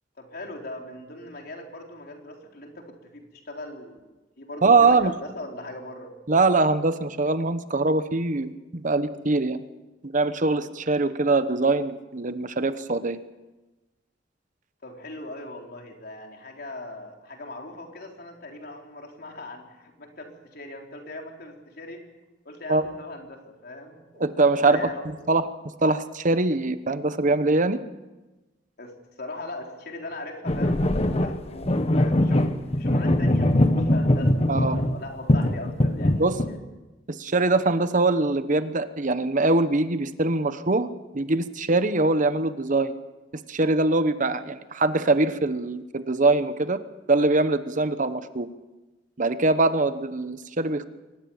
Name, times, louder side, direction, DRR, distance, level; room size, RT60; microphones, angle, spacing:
voice 1, 0.2-4.1 4.4-6.1 14.8-22.0 22.5-24.3 24.6-25.1 28.8-36.6, left 2 dB, 60° left, 2 dB, 3.9 m, -40 dB
voice 2, 4.6-5.1 6.3-9.6 10.0-13.2 22.7-22.9 24.2-24.9 25.3-25.5 25.8-27.8 34.5-34.8 36.2-36.4 37.1-40.9 41.1-42.9 43.5-46.8 47.1-48.5 49.2-50.8, right 3 dB, 45° right, 11 dB, 1.0 m, -23 dB
sound 1, 30.5-35.0 35.3-36.5, left 1 dB, 35° left, 1.2 m, -22 dB
24.0 x 19.5 x 7.2 m, 1.1 s
head